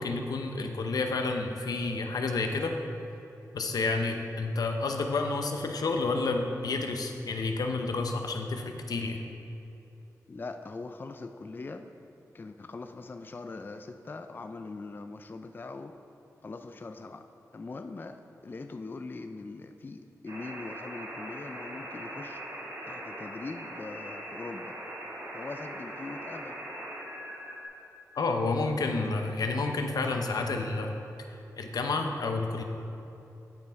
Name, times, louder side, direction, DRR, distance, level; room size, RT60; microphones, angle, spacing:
voice 1, 0.0-2.7 3.5-9.2 28.2-30.9 31.6-32.6, left 3 dB, 85° left, 4 dB, 0.7 m, -30 dB
voice 2, 10.3-11.9 12.3-15.9 16.4-17.2 17.5-22.4 22.8-24.8 25.3-26.6, left 3 dB, 35° left, 8 dB, 0.3 m, -41 dB
sound 1, 20.3-27.7, right 1 dB, 80° right, 1.7 m, -41 dB
9.3 x 5.5 x 4.6 m, 2.8 s
wide cardioid pair, 90°, 6 cm